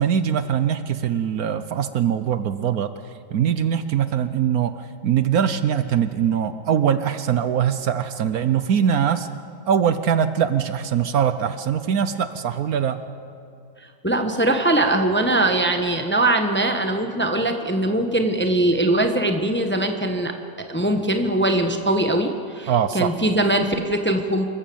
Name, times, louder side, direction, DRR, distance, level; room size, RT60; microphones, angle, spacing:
voice 1, 0.0-2.9 3.3-9.3 9.7-13.0 22.7-23.1, right 8 dB, 65° right, 11 dB, 1.2 m, -22 dB
voice 2, 14.0-20.3 20.7-24.4, right 1 dB, 10° left, 5 dB, 0.9 m, -21 dB
26.5 x 15.0 x 7.0 m, 2.5 s
omnidirectional pair, 1.8 m